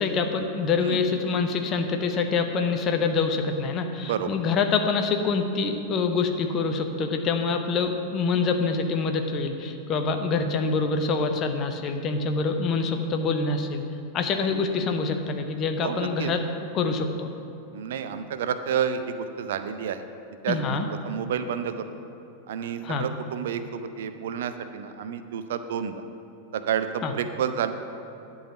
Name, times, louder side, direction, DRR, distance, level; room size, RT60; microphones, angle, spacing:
voice 1, 0.0-13.8 14.1-16.4 16.7-17.3 20.5-20.9 22.8-23.0 27.0-27.1, left 4 dB, 30° left, 5 dB, 0.8 m, -26 dB
voice 2, 15.8-16.3 17.7-20.0 20.4-21.8 22.5-25.9 26.5-27.7, right 8 dB, 60° right, 9 dB, 0.5 m, -30 dB
11.5 x 4.0 x 6.9 m, 2.8 s
figure-of-eight pair, 90°, 0 cm